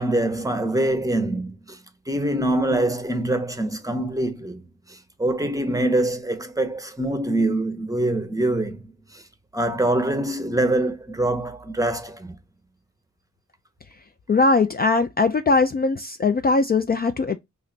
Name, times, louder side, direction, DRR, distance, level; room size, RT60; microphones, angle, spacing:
voice 1, 0.0-1.8 2.1-4.6 4.9-8.8 9.1-9.2 9.5-12.4, right 1 dB, 10° right, 0.7 m, -24 dB
voice 2, 14.3-17.4, left 3 dB, 35° left, 0.4 m, -20 dB
3.1 x 2.5 x 3.8 m
cardioid pair, 65°, 29 cm